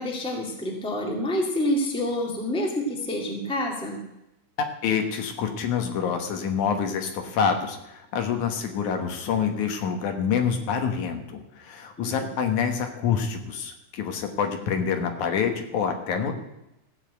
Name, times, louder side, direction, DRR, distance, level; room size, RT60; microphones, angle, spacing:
voice 1, 0.0-4.0 12.0-12.3, left 1 dB, ahead, 0 dB, 1.5 m, -28 dB
voice 2, 4.8-16.4, left 7 dB, 75° left, 5 dB, 2.6 m, -27 dB
15.0 x 5.7 x 8.0 m, 0.88 s
omnidirectional pair, 3.6 m